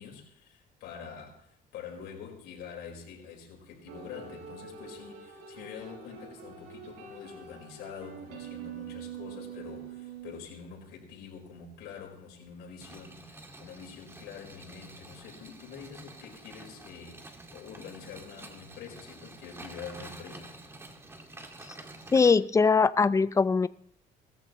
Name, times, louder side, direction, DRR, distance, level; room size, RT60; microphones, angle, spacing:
voice 1, 0.0-20.6, left 7 dB, 85° left, 4.8 m, -46 dB
sound 1, 3.9-10.4, right 7 dB, 90° right, 5.7 m, -44 dB
sound 2, 12.8-22.3, right 2 dB, 15° right, 2.2 m, -48 dB
voice 2, 22.1-23.7, left 5 dB, 20° left, 0.5 m, -21 dB
19.5 x 14.5 x 3.1 m
cardioid pair, 110°, 17 cm